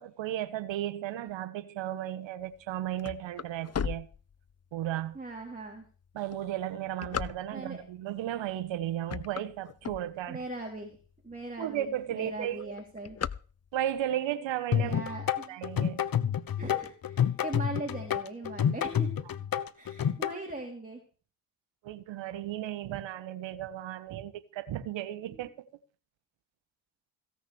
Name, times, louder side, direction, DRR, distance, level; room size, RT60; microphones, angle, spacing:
voice 1, 0.0-4.1 4.7-5.2 6.1-10.4 11.6-12.7 13.7-14.9 15.5-16.1 21.8-25.7, right 12 dB, 80° right, 1.5 m, -34 dB
sound 1, 2.5-4.8 5.4-5.5 6.2-7.9 8.5-8.7 9.0-10.5 11.0-11.1 11.4-11.5 11.8-12.1 12.4-14.0, left 8 dB, 35° left, 0.8 m, -37 dB
voice 2, 5.1-5.8 7.5-7.8 10.3-11.0 11.2-13.2 14.8-15.6 16.6-19.1 19.7-21.0 25.3-25.5, right 2 dB, 20° right, 3.8 m, -40 dB
sound 2, 14.7-20.3, left 9 dB, 50° left, 1.2 m, -29 dB
16.5 x 6.4 x 7.1 m
supercardioid pair, 60°, 44 cm